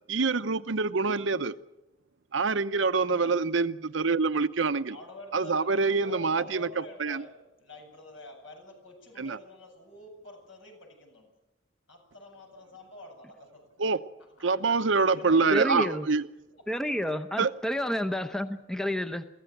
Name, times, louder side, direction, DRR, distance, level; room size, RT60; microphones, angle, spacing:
voice 1, 0.1-1.5 2.3-5.0 5.3-7.2 9.2-9.4 13.8-14.0 14.4-16.3 17.4-17.5, right 4 dB, 70° right, 12 dB, 0.8 m, -26 dB
voice 2, 4.9-7.3 7.6-11.3 11.9-13.6 14.4-14.5 15.0-16.0 16.5-16.6, left 1 dB, 75° left, 3 dB, 8.0 m, -47 dB
voice 3, 15.5-16.1 16.7-19.2, left 1 dB, 5° left, 9 dB, 0.8 m, -30 dB
23.5 x 15.0 x 9.2 m, 0.96 s
head